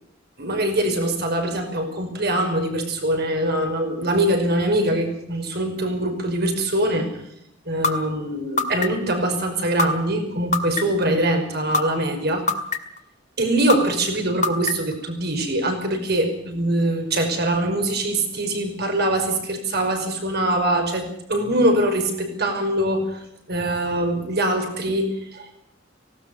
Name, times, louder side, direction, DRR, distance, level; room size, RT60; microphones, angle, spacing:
voice 1, 0.4-7.1 7.7-12.4 13.4-23.2 23.5-25.7, right 1 dB, 55° right, 5 dB, 5.5 m, -23 dB
sound 1, 7.8-7.9 8.6-9.1 9.8-9.9 10.5-11.0 11.7-11.8 12.5-13.0 13.7-13.8 14.4-14.9, left 3 dB, 40° left, 2.1 m, -21 dB
18.5 x 18.0 x 8.1 m, 0.76 s
head